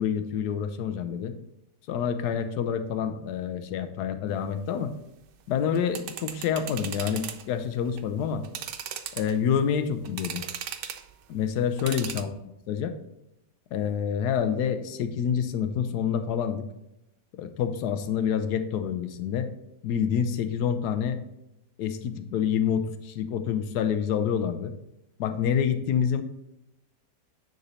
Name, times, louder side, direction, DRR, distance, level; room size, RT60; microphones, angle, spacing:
voice 1, 0.0-1.3 1.9-4.9 5.5-8.4 9.2-10.4 11.3-12.3 12.7-12.9 13.7-16.7 17.4-19.5 19.8-21.2 21.8-24.7 25.2-26.2, left 8 dB, 70° left, 9 dB, 1.2 m, -27 dB
sound 1, 5.6-7.4 7.8-8.0 8.4-9.5 10.0-11.1 11.8-12.2, right 9 dB, 85° right, 1.3 m, -37 dB
9.8 x 4.0 x 4.2 m, 0.86 s
omnidirectional pair, 1.8 m